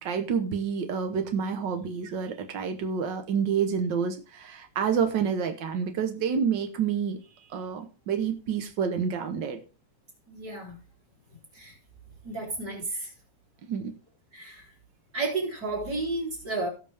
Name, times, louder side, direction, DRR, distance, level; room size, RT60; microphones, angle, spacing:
voice 1, 0.0-7.2 7.5-9.6 13.7-13.9, right 6 dB, 65° right, 6 dB, 1.1 m, -28 dB
voice 2, 10.3-10.8 11.5-11.8 12.2-13.1 14.3-14.7 15.1-16.7, right 2 dB, 30° right, -1 dB, 3.9 m, -32 dB
18.0 x 6.1 x 3.5 m, 0.34 s
omnidirectional pair, 3.4 m